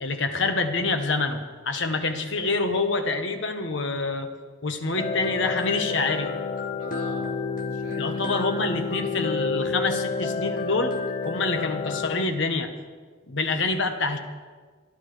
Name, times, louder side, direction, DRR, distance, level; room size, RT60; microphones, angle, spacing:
voice 1, 0.0-4.3 4.6-6.3 8.0-11.0 11.2-12.7 13.3-14.2, left 3 dB, 65° left, 6 dB, 1.2 m, -26 dB
sound 1, 5.0-12.2, left 4 dB, 40° left, 0.8 m, -29 dB
voice 2, 6.7-8.4 8.7-9.3 13.4-13.6, right 1 dB, 70° right, -2 dB, 3.8 m, -44 dB
26.5 x 11.0 x 3.4 m, 1.5 s
head